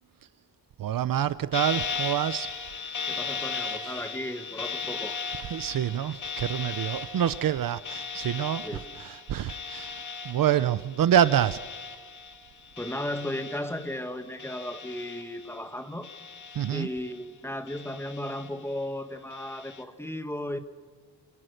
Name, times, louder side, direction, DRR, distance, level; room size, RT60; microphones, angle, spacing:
voice 1, 0.8-2.5 3.8-4.0 5.5-8.6 9.0-11.6 16.5-16.9, right 10 dB, 55° right, 16 dB, 0.7 m, -26 dB
sound 1, 1.5-14.1 14.4-15.6 16.0-17.2 17.7-18.7 19.3-19.8, left 5 dB, 45° left, 2.1 m, -37 dB
voice 2, 3.1-5.2 8.6-8.8 12.8-16.1 16.7-20.6, left 1 dB, 5° left, 8 dB, 1.3 m, -35 dB
27.0 x 26.0 x 6.6 m, 1.4 s
wide cardioid pair, 180°, 41 cm